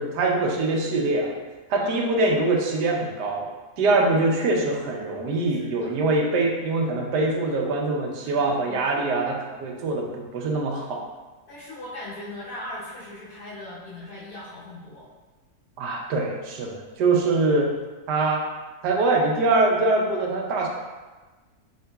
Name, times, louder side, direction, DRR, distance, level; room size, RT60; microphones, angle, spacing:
voice 1, 0.0-1.3 1.7-3.5 3.8-11.0 15.8-17.7 18.1-18.4 18.8-20.7, right 2 dB, 85° right, 0 dB, 1.3 m, -23 dB
voice 2, 3.8-4.3 5.5-5.9 8.2-8.8 11.5-15.1, left 1 dB, 70° left, -12 dB, 1.5 m, -39 dB
4.6 x 3.7 x 2.3 m, 1.2 s
omnidirectional pair, 1.7 m